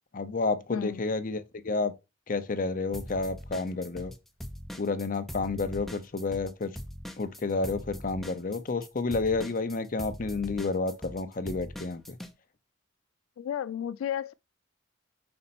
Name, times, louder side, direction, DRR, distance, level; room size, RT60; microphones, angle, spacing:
voice 1, 0.1-1.9 2.3-4.1 4.8-6.7 7.2-12.2, left 3 dB, 40° left, 0.6 m, -30 dB
voice 2, 0.7-1.0 13.4-14.3, left 9 dB, 85° left, 0.3 m, -33 dB
sound 1, 2.9-4.2 4.4-12.3, equal, ahead, 0.6 m, -41 dB
5.2 x 4.3 x 4.2 m
head